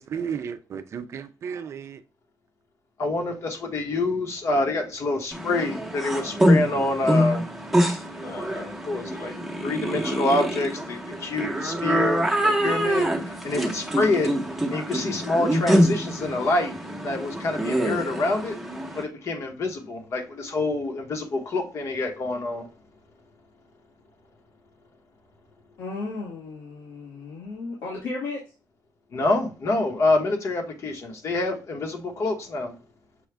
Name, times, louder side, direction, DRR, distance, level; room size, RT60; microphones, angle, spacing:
voice 1, 0.0-2.0, right 7 dB, 45° right, 0.4 m, -33 dB
voice 2, 3.0-7.5 8.2-9.3 9.6-14.3 14.7-16.7 17.0-18.6 18.9-22.7 29.1-32.7, left 2 dB, 45° left, 1.2 m, -27 dB
sound 1, 5.3-19.0, equal, ahead, 0.9 m, -25 dB
voice 3, 25.8-28.4, left 3 dB, 80° left, 1.7 m, -34 dB
6.3 x 2.4 x 3.3 m
cardioid pair, 155°, 7 cm